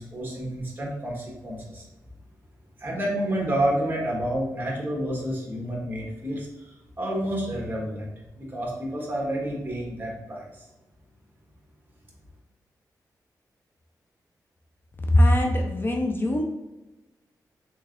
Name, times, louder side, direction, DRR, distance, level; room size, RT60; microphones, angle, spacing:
voice 1, 0.0-1.8 2.8-8.1 8.3-10.7, right 1 dB, 30° right, -3 dB, 1.2 m, -29 dB
voice 2, 15.1-16.4, left 1 dB, 30° left, 2 dB, 0.5 m, -21 dB
3.4 x 3.3 x 2.5 m, 1.0 s
cardioid pair, 70°, 7 cm